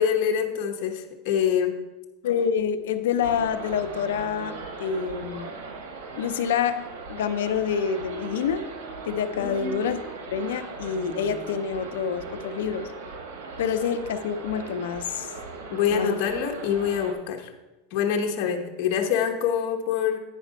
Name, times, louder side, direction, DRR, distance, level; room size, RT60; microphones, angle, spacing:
voice 1, 0.0-1.8 9.3-9.9 15.7-17.5 17.9-20.2, left 8 dB, 55° left, 3 dB, 1.1 m, -25 dB
voice 2, 2.2-5.6 6.2-8.7 9.1-10.0 10.3-12.9 13.6-15.3 15.9-16.2, left 7 dB, 90° left, 10 dB, 0.6 m, -27 dB
sound 1, 3.2-17.1, right 4 dB, 85° right, 1.5 m, -39 dB
9.2 x 5.1 x 5.2 m, 1.1 s
supercardioid pair, 150°, 0 cm